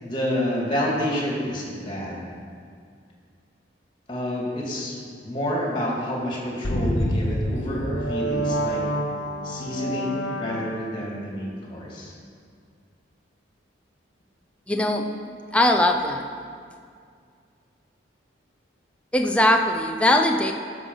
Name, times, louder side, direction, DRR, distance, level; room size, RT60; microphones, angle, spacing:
voice 1, 0.0-2.2 4.1-8.8 9.4-12.1, equal, 25° left, -3 dB, 2.3 m, -29 dB
sound 1, 6.6-11.1, equal, 75° left, 1.0 m, -27 dB
voice 2, 14.7-15.1 15.5-16.2 19.1-20.5, left 1 dB, 5° left, 3 dB, 0.5 m, -20 dB
13.5 x 6.2 x 5.5 m, 2.2 s
head